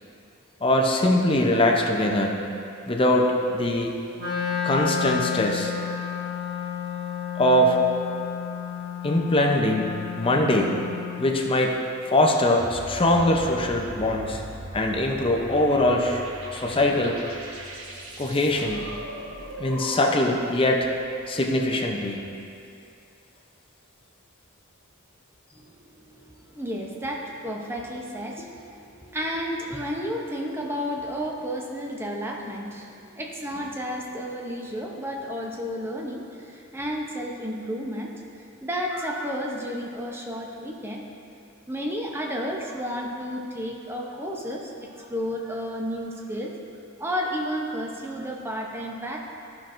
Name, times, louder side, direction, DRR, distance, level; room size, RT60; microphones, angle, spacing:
voice 1, 0.6-2.3 2.9-3.9 4.6-5.7 7.4-7.8 9.0-10.8 11.2-11.8 12.1-14.4 14.7-16.2 16.5-17.2 18.2-18.9 19.6-20.9 21.3-22.2, left 1 dB, 25° left, 1 dB, 0.6 m, -22 dB
Wind instrument woodwind instrument, 4.2-11.3, left 7 dB, 45° right, 1.9 m, -31 dB
sound 1, 12.6-20.4, right 1 dB, 80° right, 1.2 m, -39 dB
voice 2, 25.5-41.1 41.7-46.6 47.0-49.2, equal, 10° right, -1 dB, 0.7 m, -32 dB
13.0 x 5.8 x 2.6 m, 2.6 s
head